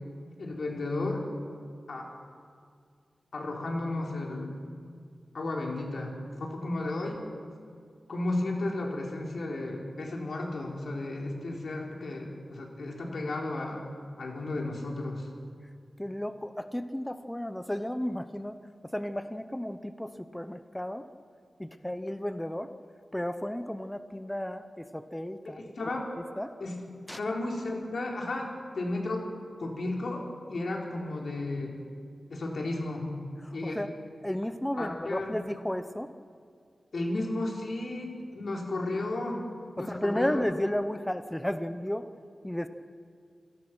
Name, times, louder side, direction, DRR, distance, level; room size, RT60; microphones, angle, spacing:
voice 1, 0.4-1.2 1.9-2.1 3.3-4.6 5.3-7.2 8.1-13.8 14.2-15.3 25.5-26.1 26.6-26.8 27.2-29.3 29.6-31.7 32.3-33.1 33.5-33.8 34.8-35.3 36.9-39.4 39.8-40.4, left 2 dB, 65° left, 0 dB, 4.1 m, -33 dB
voice 2, 16.0-21.1 21.6-22.7 23.1-25.7 26.2-26.5 27.1-27.2 33.4-33.9 34.2-36.1 39.8-42.1 42.4-42.7, left 1 dB, 10° left, 10 dB, 0.8 m, -33 dB
27.0 x 17.5 x 6.2 m, 2.2 s
wide cardioid pair, 130°, 0 cm